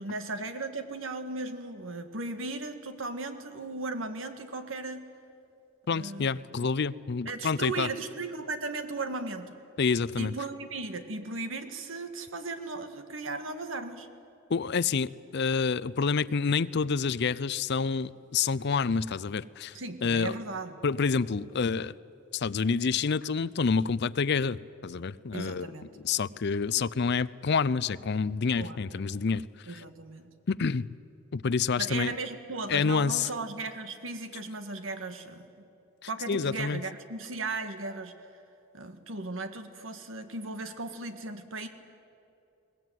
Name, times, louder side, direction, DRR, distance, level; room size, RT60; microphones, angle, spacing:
voice 1, 0.0-5.1 5.9-6.4 7.3-9.5 10.1-14.1 19.7-20.8 25.3-25.9 28.6-28.8 29.7-30.3 31.8-35.7 36.1-38.2 38.7-41.7, right 3 dB, 75° right, 8 dB, 1.8 m, -36 dB
voice 2, 5.9-7.9 9.8-10.3 14.5-19.7 20.0-20.4 20.8-21.9 22.3-25.7 26.0-29.8 30.5-30.9 31.3-32.1 32.7-33.3 36.3-36.8, left 5 dB, 55° left, 17 dB, 0.5 m, -28 dB
22.0 x 19.0 x 9.3 m, 2.8 s
head